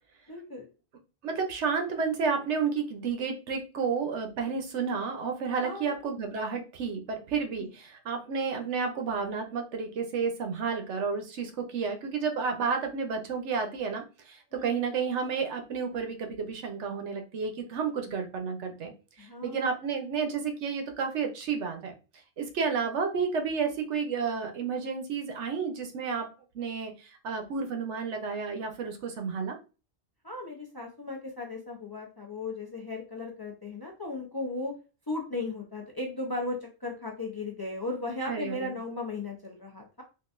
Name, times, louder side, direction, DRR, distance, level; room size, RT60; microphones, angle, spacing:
voice 1, 0.3-0.7 5.6-5.9 7.6-7.7 14.5-14.9 19.2-19.7 30.2-34.7 35.1-40.0, left 2 dB, 30° left, 0 dB, 0.5 m, -36 dB
voice 2, 1.2-18.9 19.2-21.9 22.4-26.3 26.5-29.6 38.3-38.8, right 5 dB, 80° right, 4 dB, 1.0 m, -31 dB
3.8 x 2.4 x 2.5 m, 0.32 s
omnidirectional pair, 1.2 m